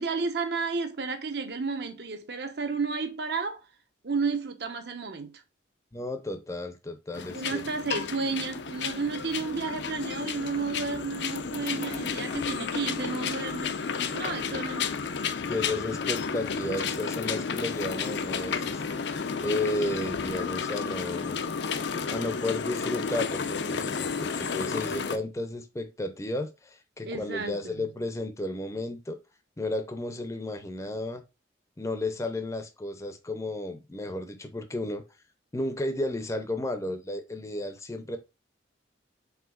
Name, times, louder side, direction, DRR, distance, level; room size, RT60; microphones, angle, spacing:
voice 1, 0.0-3.6 4.0-5.3 7.3-14.9 27.0-27.9, right 4 dB, 60° right, 0.9 m, -32 dB
voice 2, 5.9-7.6 15.5-19.1 19.4-21.4 22.1-29.2 29.6-31.2 31.8-35.0 35.5-38.2, left 1 dB, 15° left, 0.6 m, -33 dB
sound 1, 7.1-25.2, left 5 dB, 70° left, 0.5 m, -32 dB
4.8 x 3.5 x 2.3 m
head